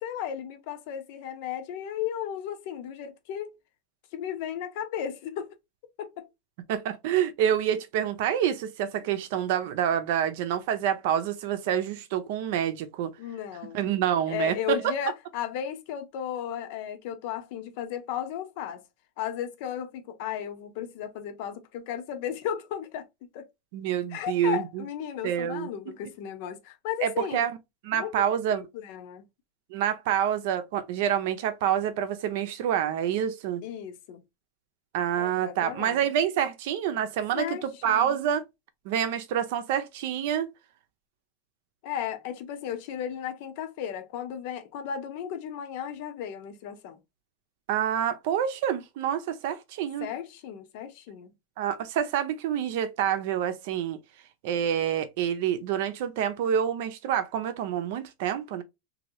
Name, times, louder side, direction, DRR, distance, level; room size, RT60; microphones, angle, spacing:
voice 1, 0.0-3.5 4.1-5.5 6.0-6.3 13.2-13.8 14.3-18.8 19.2-23.1 23.3-23.5 24.1-27.4 28.0-29.2 33.6-34.2 35.2-36.1 37.3-38.2 41.8-47.0 50.0-51.3, left 9 dB, 50° left, 0.8 m, -35 dB
voice 2, 6.7-13.1 13.7-14.8 23.7-24.8 25.2-25.7 27.0-27.5 27.8-28.6 29.7-33.6 34.9-38.4 38.8-40.5 47.7-50.1 51.6-54.0 54.4-58.6, right 9 dB, 55° right, 0.6 m, -27 dB
3.1 x 2.7 x 2.8 m
supercardioid pair, 170°, 0 cm